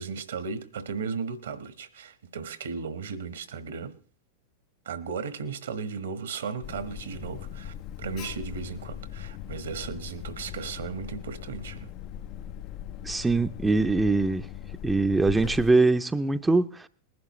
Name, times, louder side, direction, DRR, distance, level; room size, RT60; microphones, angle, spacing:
voice 1, 0.0-3.9 4.8-11.9, right 5 dB, 75° right, 1.4 m, -36 dB
Alarm, 6.6-15.7, left 11 dB, 45° left, 0.5 m, -39 dB
voice 2, 13.0-14.5 14.8-16.9, right 3 dB, 10° right, 0.6 m, -23 dB
20.5 x 11.0 x 3.2 m
hypercardioid pair, 95°, 0 cm